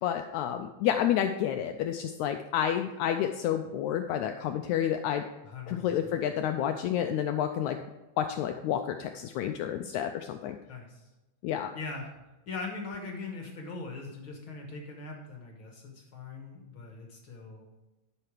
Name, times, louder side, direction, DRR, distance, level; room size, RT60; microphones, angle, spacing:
voice 1, 0.0-5.2 5.7-7.8 8.2-10.6 11.4-11.7, left 10 dB, 80° left, 6 dB, 1.7 m, -30 dB
voice 2, 5.4-6.2 10.7-11.1 11.7-12.1 12.5-17.7, left 3 dB, 55° left, 1 dB, 1.6 m, -41 dB
12.0 x 5.8 x 4.9 m, 1.1 s
omnidirectional pair, 3.8 m